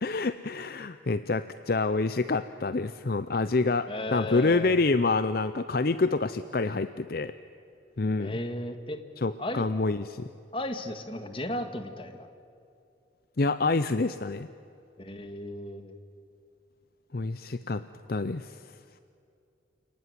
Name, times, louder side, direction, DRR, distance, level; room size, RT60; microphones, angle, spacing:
voice 1, 0.0-7.3 8.0-8.4 9.2-10.3 13.4-14.5 17.1-18.6, left 3 dB, 50° left, 12 dB, 0.6 m, -27 dB
voice 2, 3.9-4.8 8.2-9.0 9.4-9.6 10.5-12.3 15.0-16.0, left 1 dB, 30° left, 8 dB, 1.8 m, -35 dB
29.0 x 19.0 x 9.6 m, 2.6 s
head